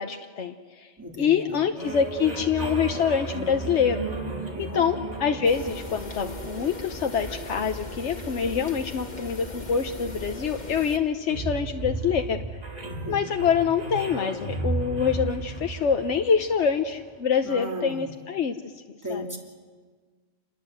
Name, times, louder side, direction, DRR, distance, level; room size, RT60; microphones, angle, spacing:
voice 1, 0.0-0.9 1.2-4.0 4.6-12.4 13.1-18.6 19.1-19.3, left 7 dB, 85° left, 5 dB, 1.3 m, -25 dB
voice 2, 1.0-1.6 4.5-4.9 12.8-13.3 17.4-18.1 19.0-19.4, left 1 dB, 15° right, 0 dB, 3.4 m, -36 dB
sound 1, 1.8-17.2, right 3 dB, 35° right, 2.3 m, -35 dB
sound 2, 5.4-11.0, left 1 dB, 40° left, 1.8 m, -38 dB
28.5 x 21.0 x 8.0 m, 1.5 s
omnidirectional pair, 1.2 m